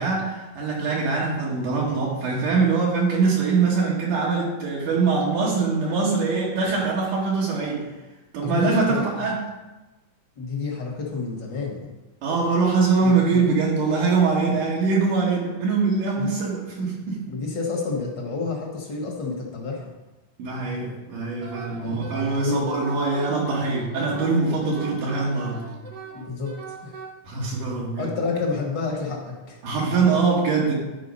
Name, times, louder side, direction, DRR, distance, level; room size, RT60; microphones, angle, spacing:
voice 1, 0.0-7.9 8.3-9.4 12.2-17.2 20.4-25.7 27.2-28.1 29.6-30.7, right 4 dB, 75° right, -4 dB, 3.0 m, -23 dB
voice 2, 8.4-9.3 10.4-11.9 13.0-13.4 14.5-14.6 16.2-16.3 17.3-19.9 21.8-22.7 26.1-27.0 28.0-29.6, left 4 dB, 50° left, -1 dB, 1.3 m, -29 dB
Wind instrument woodwind instrument, 21.4-27.1, right 4 dB, 55° right, 1.9 m, -39 dB
11.0 x 4.5 x 5.3 m, 1.1 s
omnidirectional pair, 3.7 m